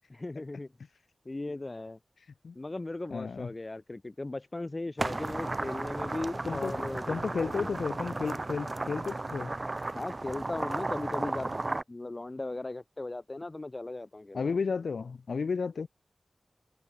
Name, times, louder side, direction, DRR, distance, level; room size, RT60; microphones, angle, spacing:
voice 1, 0.1-0.7 1.2-2.0 2.5-7.7 9.9-11.6 11.9-14.5, left 2 dB, 35° left, 4.5 m, -38 dB
voice 2, 3.1-3.5 6.5-6.7 7.1-9.5 14.3-15.9, left 5 dB, 85° left, 4.8 m, -32 dB
sound 1, 5.0-11.8, right 2 dB, 40° right, 3.1 m, -34 dB
cardioid pair, 45°, 0 cm